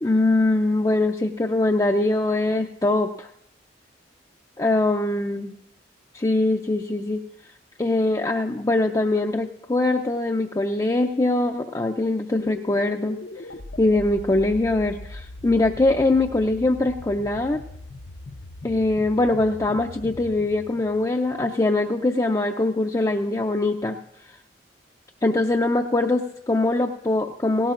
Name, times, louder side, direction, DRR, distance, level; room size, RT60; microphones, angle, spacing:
voice 1, 0.0-3.3 4.6-5.5 6.1-7.2 7.8-13.2 13.8-17.6 18.6-24.0 25.2-27.7, left 2 dB, 20° left, 2 dB, 0.5 m, -22 dB
sound 1, 12.4-21.7, left 2 dB, 60° left, 0.6 m, -40 dB
18.0 x 17.0 x 2.5 m, 0.76 s
head